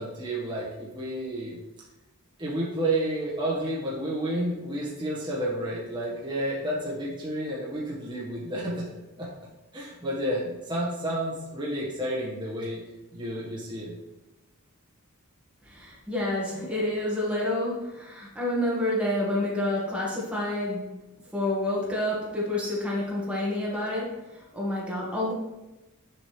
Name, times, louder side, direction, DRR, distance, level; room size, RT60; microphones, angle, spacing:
voice 1, 0.0-1.6 2.4-8.9 9.2-9.3 9.7-12.8 13.1-13.9, right 1 dB, 20° right, -8 dB, 1.4 m, -30 dB
voice 2, 15.7-20.9 21.3-25.3, left 1 dB, 5° right, -5 dB, 1.7 m, -29 dB
7.3 x 5.1 x 3.3 m, 1.0 s
head